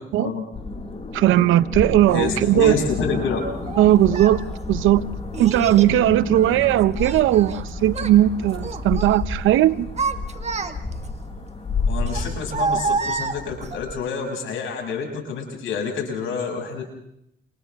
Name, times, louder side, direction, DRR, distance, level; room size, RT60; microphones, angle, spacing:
sound 1, 0.5-13.9, left 3 dB, 30° left, 5.0 m, -31 dB
voice 1, 1.1-2.7 3.8-4.4 4.7-5.0 5.4-9.9, right 13 dB, 90° right, 0.8 m, -18 dB
voice 2, 2.1-3.4 11.9-16.8, left 5 dB, 85° left, 6.9 m, -28 dB
Child speech kid speaking, 2.6-2.7 3.7-4.4 5.3-5.9 6.4-7.6 7.9-8.2 8.6-9.2 9.7-11.1 12.1-13.8, right 4 dB, 35° right, 1.7 m, -28 dB
29.5 x 28.5 x 3.6 m
cardioid pair, 90°, 20 cm